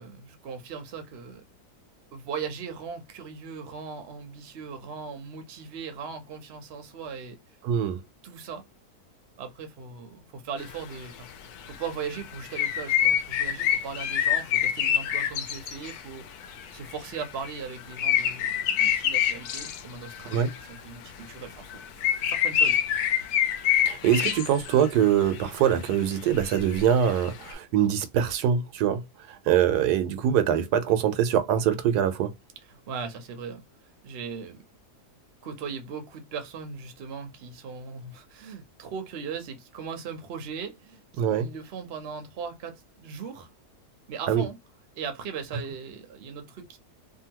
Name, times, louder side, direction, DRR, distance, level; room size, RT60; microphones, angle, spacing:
voice 1, 0.0-1.4 2.1-7.4 8.2-8.6 9.4-11.3 11.7-16.3 16.7-21.8 22.3-22.8 32.7-33.6 34.0-34.6 35.4-43.5 44.1-44.6 45.0-46.8, right 6 dB, 50° right, 0.8 m, -38 dB
voice 2, 7.6-8.0 20.3-20.5 23.8-29.0 29.3-32.3 41.2-41.5 44.3-44.5, right 9 dB, 80° right, 1.2 m, -23 dB
sound 1, 10.6-10.9 11.7-16.0 16.4-20.8 21.2-21.3 21.7-25.4 25.9-27.5, left 9 dB, 75° left, 1.1 m, -27 dB
2.8 x 2.6 x 2.8 m
omnidirectional pair, 1.7 m